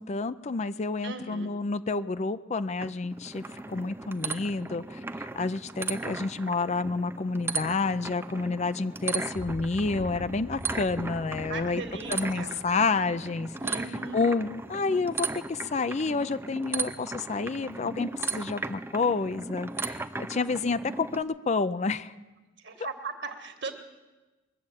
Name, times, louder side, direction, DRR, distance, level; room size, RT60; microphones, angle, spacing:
voice 1, 0.0-11.8 12.1-13.5 14.1-22.1, left 4 dB, 35° left, 14 dB, 0.4 m, -29 dB
voice 2, 1.0-1.5 11.5-12.5 13.6-14.3 22.6-23.7, right 3 dB, 65° right, 6 dB, 1.7 m, -37 dB
sound 1, 2.8-21.2, right 3 dB, 10° right, 0.5 m, -37 dB
sound 2, 9.3-13.7, left 1 dB, 65° left, 2.4 m, -44 dB
21.5 x 7.4 x 9.0 m, 1.2 s
head